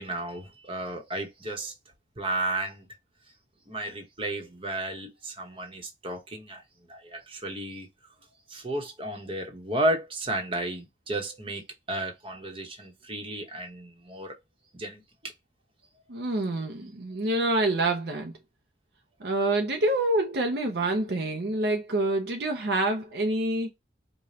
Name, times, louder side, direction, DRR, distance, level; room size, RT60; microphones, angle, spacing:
voice 1, 0.0-1.7 2.2-2.9 3.7-6.6 6.9-7.9 8.5-11.6 11.9-14.4 14.7-15.3, right 1 dB, 30° right, 1.0 m, -33 dB
voice 2, 16.1-18.4 19.2-23.7, right 2 dB, 60° right, 0.6 m, -27 dB
4.9 x 2.2 x 2.8 m
head